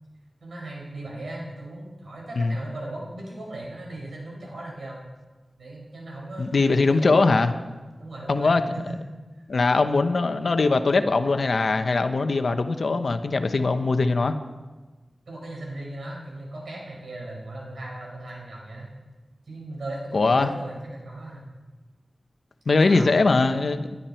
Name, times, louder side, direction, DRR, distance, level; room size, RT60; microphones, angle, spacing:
voice 1, 0.4-5.0 5.6-7.5 8.0-8.5 8.9-9.0 15.3-18.9 19.5-21.5 22.8-23.1, right 1 dB, 85° right, -2 dB, 5.6 m, -38 dB
voice 2, 6.4-7.5 8.3-8.6 9.5-14.3 20.1-20.5 22.7-23.9, left 3 dB, 70° left, 8 dB, 1.1 m, -21 dB
21.5 x 12.0 x 4.6 m, 1.2 s
wide cardioid pair, 55°, 0 cm